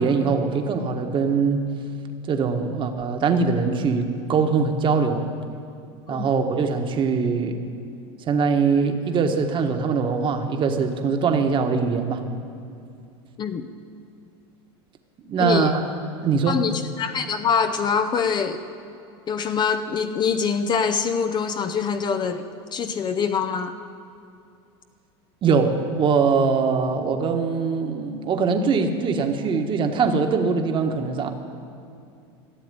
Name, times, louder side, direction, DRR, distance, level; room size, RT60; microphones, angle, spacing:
voice 1, 0.0-1.7 2.3-5.3 6.1-7.6 8.2-12.2 15.2-15.8 16.2-16.6 25.4-31.3, right 5 dB, 35° right, 5 dB, 1.4 m, -22 dB
voice 2, 15.4-15.7 16.5-18.6 19.3-22.4 22.7-23.7, left 6 dB, 30° left, 8 dB, 0.7 m, -24 dB
14.5 x 7.2 x 9.7 m, 2.5 s
supercardioid pair, 115°, 15 cm